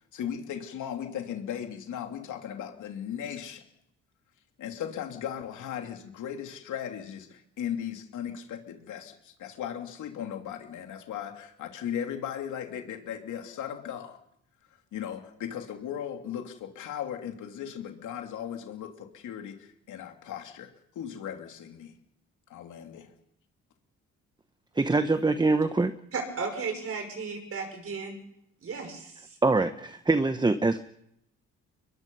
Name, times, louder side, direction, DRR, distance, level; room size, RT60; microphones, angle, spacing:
voice 1, 0.1-3.6 4.6-14.2 14.9-20.7 20.9-21.9 22.5-23.1, left 9 dB, 75° left, 4 dB, 2.9 m, -37 dB
voice 2, 24.7-25.9 29.4-30.8, right 3 dB, 15° right, 10 dB, 0.9 m, -24 dB
voice 3, 26.1-28.2 28.6-29.4, right 4 dB, 50° right, 5 dB, 6.1 m, -35 dB
23.5 x 21.5 x 5.5 m, 0.76 s
cardioid pair, 90°, 30 cm